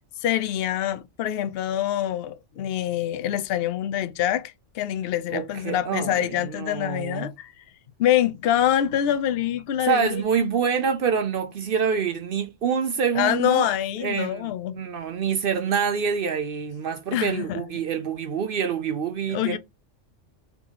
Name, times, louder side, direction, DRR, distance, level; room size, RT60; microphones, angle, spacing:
voice 1, 0.2-7.5 8.0-10.2 13.2-14.8 17.1-17.6 19.3-19.6, left 11 dB, 60° left, 0.7 m, -25 dB
voice 2, 5.3-7.3 9.8-13.7 14.0-14.5 14.7-19.6, right 6 dB, 60° right, 0.6 m, -26 dB
3.5 x 3.0 x 3.8 m
omnidirectional pair, 1.3 m